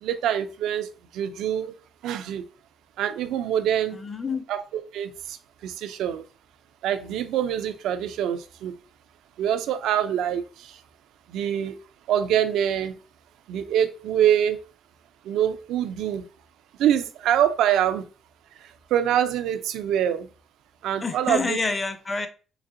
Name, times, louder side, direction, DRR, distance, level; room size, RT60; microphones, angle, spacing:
voice 1, 0.0-1.7 2.0-2.4 3.0-4.0 4.5-4.6 4.9-6.2 6.8-8.7 9.4-10.8 11.3-11.8 12.1-13.0 13.5-14.6 15.2-16.2 16.8-18.0 18.6-20.3 20.8-21.6, right 10 dB, 85° right, 0.4 m, -25 dB
voice 2, 3.9-4.4 21.0-22.3, left 4 dB, 30° left, 0.6 m, -28 dB
4.0 x 3.3 x 2.5 m
cardioid pair, 90°, 0 cm